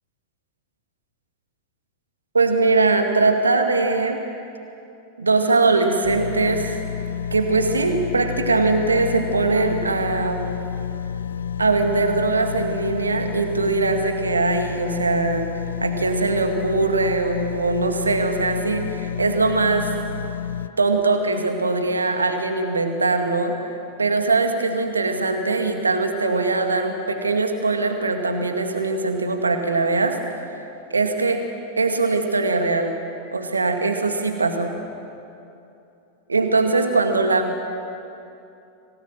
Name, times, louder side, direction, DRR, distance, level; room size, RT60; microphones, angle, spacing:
voice 1, 2.3-4.2 5.2-6.8 7.3-10.4 11.6-19.9 20.8-23.6 24.0-30.2 30.9-31.4 31.8-33.0 33.3-34.7 36.3-37.6, right 3 dB, 75° right, 5 dB, 2.1 m, -21 dB
sound 1, 6.0-20.7, left 8 dB, 70° left, 0.7 m, -30 dB
25.5 x 18.0 x 7.5 m, 2.8 s
figure-of-eight pair, 90°, 0 cm